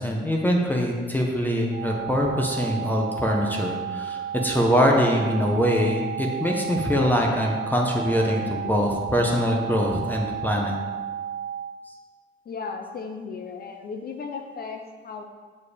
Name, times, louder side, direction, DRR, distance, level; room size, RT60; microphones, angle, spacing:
voice 1, 0.0-10.8, equal, 10° left, 0 dB, 1.0 m, -23 dB
sound 1, 1.7-11.7, right 9 dB, 30° right, 1.6 m, -33 dB
voice 2, 12.5-15.2, left 5 dB, 50° left, 5 dB, 0.6 m, -35 dB
6.6 x 4.9 x 5.0 m, 1.5 s
cardioid pair, 90°, 20 cm